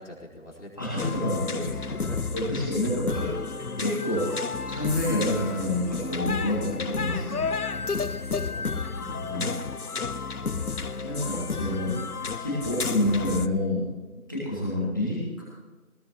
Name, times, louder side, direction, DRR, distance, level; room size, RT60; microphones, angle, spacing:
voice 1, 0.0-1.0 1.8-2.2 8.1-10.0, left 1 dB, 55° left, -3 dB, 4.5 m, -45 dB
voice 2, 0.8-1.8 2.3-3.3 3.8-4.3 4.7-7.4 9.0-9.5 11.0-11.9 12.4-13.8 14.3-15.4, left 1 dB, 15° left, -8 dB, 2.7 m, -28 dB
sound 1, 1.0-13.5, left 4 dB, 85° left, 1.0 m, -31 dB
20.0 x 16.0 x 3.1 m, 1.2 s
figure-of-eight pair, 175°, 44 cm